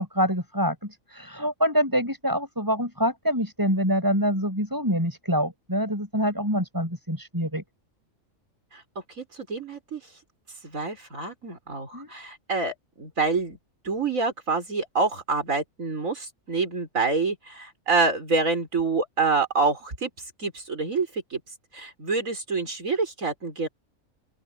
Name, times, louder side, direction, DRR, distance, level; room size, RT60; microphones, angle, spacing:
voice 1, 0.0-7.6 11.9-12.1, equal, 15° right, 8.0 m, -26 dB
voice 2, 9.2-10.0 10.6-13.6 13.8-20.1 20.4-21.4 21.7-23.7, right 4 dB, 80° right, 5.3 m, -27 dB
open air
omnidirectional pair, 1.4 m